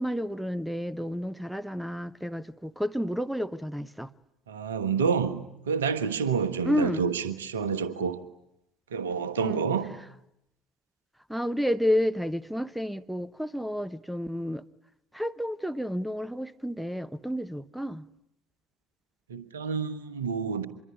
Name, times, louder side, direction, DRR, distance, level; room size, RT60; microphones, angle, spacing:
voice 1, 0.0-4.1 6.6-7.0 9.4-9.7 11.3-14.6 15.1-18.1, equal, ahead, 1.0 m, -30 dB
voice 2, 4.5-8.2 8.9-9.9 19.3-20.7, right 6 dB, 75° right, 1.4 m, -28 dB
25.5 x 22.5 x 10.0 m
figure-of-eight pair, 55°, 0 cm